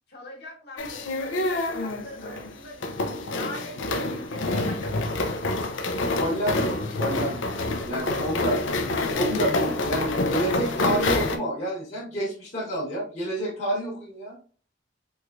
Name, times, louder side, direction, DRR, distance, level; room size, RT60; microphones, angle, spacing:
voice 1, 0.1-5.8, left 2 dB, 60° left, -2 dB, 1.3 m, -43 dB
sound 1, 0.8-11.4, left 2 dB, 90° left, 0.5 m, -27 dB
voice 2, 6.2-7.5 7.8-8.6 9.1-14.4, right 1 dB, 40° left, -5 dB, 1.1 m, -29 dB
3.5 x 3.1 x 2.4 m, 0.39 s
head